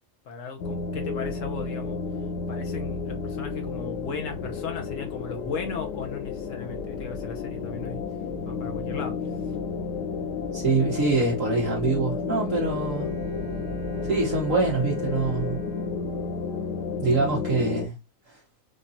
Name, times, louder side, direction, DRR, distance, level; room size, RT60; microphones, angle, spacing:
voice 1, 0.2-2.0 2.5-8.0 8.5-9.2, left 4 dB, 55° left, 1.1 m, -36 dB
sound 1, 0.6-17.9, left 5 dB, 85° left, 1.4 m, -32 dB
voice 2, 10.5-13.2 14.0-15.6 17.0-17.9 18.3-18.4, right 3 dB, 55° right, 1.5 m, -25 dB
Bowed string instrument, 12.4-17.2, right 8 dB, 70° right, 1.8 m, -46 dB
5.1 x 2.4 x 2.7 m
omnidirectional pair, 1.7 m